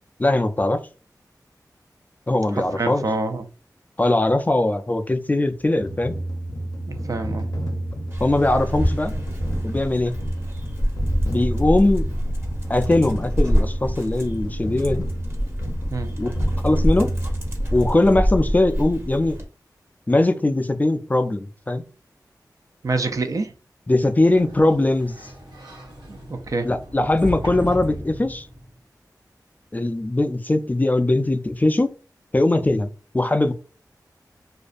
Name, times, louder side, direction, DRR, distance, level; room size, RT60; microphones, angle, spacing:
voice 1, 0.2-0.8 2.3-3.0 4.0-6.2 8.2-9.1 9.6-10.1 11.3-12.1 12.7-15.1 16.2-16.3 16.6-17.1 17.7-19.4 20.1-21.8 23.9-25.1 26.6-28.5 29.7-31.9 32.3-33.5, left 2 dB, 25° left, 0.3 m, -20 dB
voice 2, 2.5-3.5 6.9-7.5 15.9-16.1 22.8-23.5 26.1-26.7, right 3 dB, 50° right, 0.4 m, -26 dB
sound 1, 5.8-18.2, right 1 dB, 65° left, 0.6 m, -31 dB
Dog, 8.1-19.5, equal, 35° right, 0.8 m, -26 dB
Sliding door, 24.1-28.8, equal, 80° right, 1.0 m, -36 dB
2.4 x 2.1 x 2.4 m
cardioid pair, 40°, 7 cm